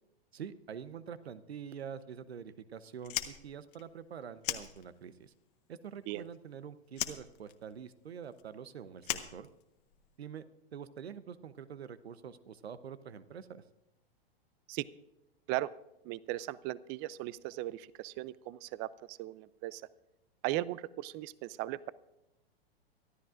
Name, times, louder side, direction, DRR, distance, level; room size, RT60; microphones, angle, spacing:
voice 1, 0.3-5.3 5.7-9.5 10.2-10.4 10.7-13.6, right 7 dB, 90° right, 14 dB, 0.9 m, -46 dB
Fire, 3.0-5.3 5.6-6.6 6.9-10.1, left 14 dB, 55° left, 1.3 m, -39 dB
voice 2, 16.0-19.8 20.4-21.9, right 16 dB, 35° right, 19 dB, 0.5 m, -37 dB
24.0 x 12.5 x 2.5 m, 0.89 s
hypercardioid pair, 115°, 31 cm